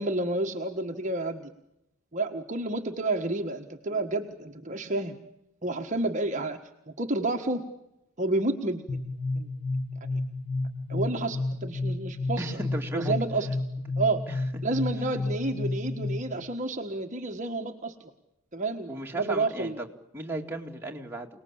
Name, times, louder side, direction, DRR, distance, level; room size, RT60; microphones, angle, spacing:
voice 1, 0.0-1.5 2.1-5.2 5.6-6.6 6.9-7.6 8.2-9.0 9.3-9.5 10.1-10.2 10.9-12.5 12.9-13.5 14.0-14.2 14.6-17.9 18.5-19.8, right 2 dB, 35° right, 3 dB, 1.4 m, -30 dB
sound 1, 8.9-16.4, left 2 dB, 25° left, 5.3 m, -31 dB
voice 2, 12.4-13.2 13.4-13.5 14.3-14.4 18.9-19.9 20.1-21.3, right 2 dB, 10° right, 0 dB, 2.4 m, -35 dB
28.5 x 19.5 x 8.7 m, 0.86 s
head